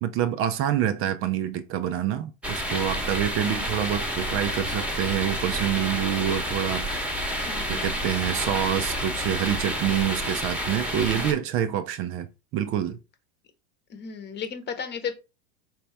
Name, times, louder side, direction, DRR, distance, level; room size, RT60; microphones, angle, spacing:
voice 1, 0.0-7.3 7.7-12.3 12.5-13.0, right 10 dB, 40° right, 0.5 m, -27 dB
sound 1, 2.4-11.3, equal, 5° right, 1.0 m, -29 dB
voice 2, 7.5-7.9 11.0-11.4 13.9-15.2, left 7 dB, 30° left, 1.0 m, -35 dB
4.3 x 2.9 x 3.3 m
hypercardioid pair, 100°, 33 cm